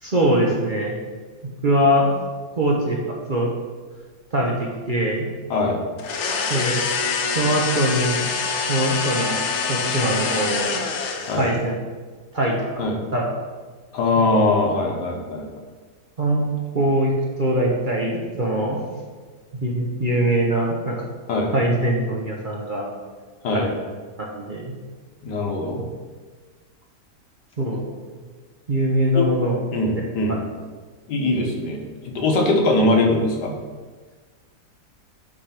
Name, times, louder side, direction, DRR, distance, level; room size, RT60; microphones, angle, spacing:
voice 1, 0.0-0.9 1.6-2.1 2.6-3.0 3.3-3.5 4.3-5.3 6.5-6.8 7.3-8.2 8.7-9.4 9.7-10.8 11.3-11.7 12.3-12.5 13.1-13.2 16.2-16.5 16.7-17.1 17.4-18.8 19.6-21.0 21.5-22.9 23.5-23.7 24.2-24.7 27.6-27.8 28.7-29.6 30.0-30.1, right 1 dB, 40° right, -2 dB, 0.8 m, -22 dB
voice 2, 5.5-5.8 11.3-11.5 12.8-13.0 13.9-15.5 21.3-21.5 23.4-23.7 25.2-25.8 29.1-29.2 29.7-30.4 31.1-31.8 32.1-33.5, left 2 dB, 80° left, 1 dB, 1.7 m, -21 dB
sound 1, 6.0-11.6, left 5 dB, 60° left, 0.8 m, -25 dB
8.8 x 3.3 x 5.8 m, 1.4 s
omnidirectional pair, 1.8 m